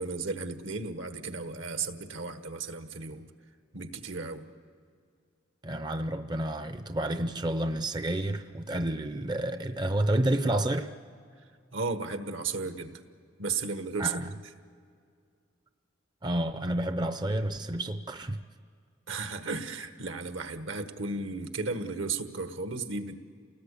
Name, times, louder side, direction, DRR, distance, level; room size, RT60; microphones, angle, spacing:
voice 1, 0.0-3.3 3.7-4.5 11.7-13.0 13.4-14.2 19.1-23.1, right 4 dB, 70° right, 1.4 m, -34 dB
voice 2, 5.6-10.9 14.0-14.3 16.2-18.4, right 1 dB, 20° right, 0.6 m, -30 dB
28.5 x 19.0 x 8.4 m
head